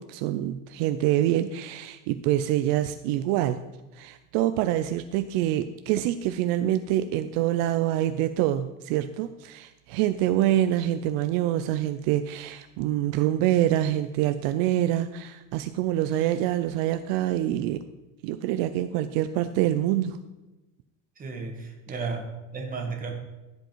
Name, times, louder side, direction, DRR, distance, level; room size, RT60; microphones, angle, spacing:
voice 1, 0.0-3.6 3.9-17.8 18.2-20.2, right 13 dB, 70° right, 10 dB, 0.6 m, -26 dB
voice 2, 21.2-23.1, right 4 dB, 25° right, 3 dB, 1.9 m, -34 dB
15.5 x 5.3 x 4.5 m, 1.1 s
cardioid pair, 135°, 35 cm